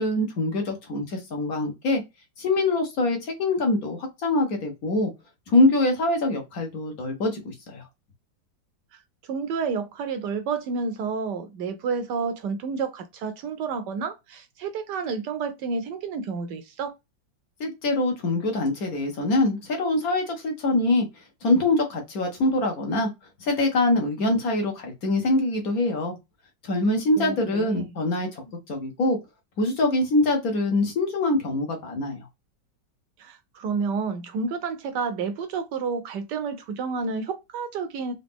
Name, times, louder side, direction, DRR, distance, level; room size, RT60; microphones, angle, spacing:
voice 1, 0.0-2.0 2.4-5.1 5.5-7.8 17.6-23.1 23.4-26.1 26.6-28.4 28.7-29.2 29.6-32.3, left 2 dB, 55° left, 1.2 m, -24 dB
voice 2, 9.3-17.0 27.2-27.9 33.2-38.1, right 5 dB, 75° right, 1.1 m, -30 dB
4.0 x 2.7 x 3.5 m
omnidirectional pair, 2.1 m